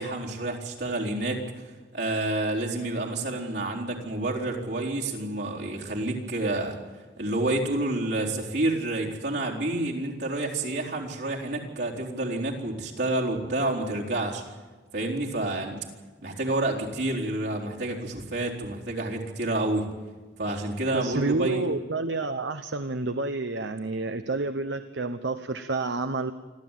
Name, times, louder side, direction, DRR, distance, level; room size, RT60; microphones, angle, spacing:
voice 1, 0.0-1.6 1.9-6.8 7.2-14.4 14.9-15.8 16.2-19.9 20.4-21.7, right 2 dB, 70° right, -2 dB, 4.2 m, -29 dB
voice 2, 20.9-26.3, right 3 dB, 85° right, 9 dB, 1.0 m, -29 dB
26.0 x 14.0 x 9.2 m, 1.3 s
head